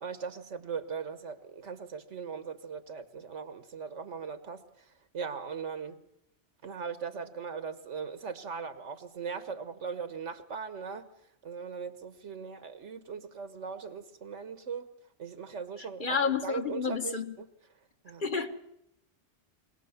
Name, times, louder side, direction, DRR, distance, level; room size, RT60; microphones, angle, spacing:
voice 1, 0.0-4.6 5.1-6.0 6.6-11.1 11.4-14.9 15.2-16.2 16.4-17.5 18.0-18.2, right 6 dB, 90° right, 1.6 m, -39 dB
voice 2, 16.0-17.3 18.2-18.6, left 5 dB, 45° left, 1.4 m, -30 dB
24.0 x 18.5 x 7.2 m
omnidirectional pair, 1.2 m